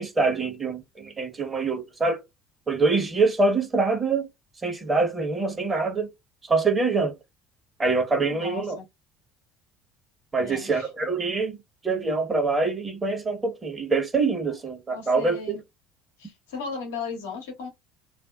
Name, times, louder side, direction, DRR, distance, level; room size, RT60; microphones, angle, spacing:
voice 1, 0.0-2.2 2.7-4.3 4.6-6.1 6.4-7.1 7.8-8.8 10.3-11.6 11.8-15.4, right 3 dB, 25° right, 1.0 m, -24 dB
voice 2, 8.3-8.8 10.4-10.9 14.9-15.6 16.2-17.7, left 5 dB, 80° left, 0.8 m, -36 dB
2.5 x 2.1 x 2.3 m
hypercardioid pair, 70°, 0 cm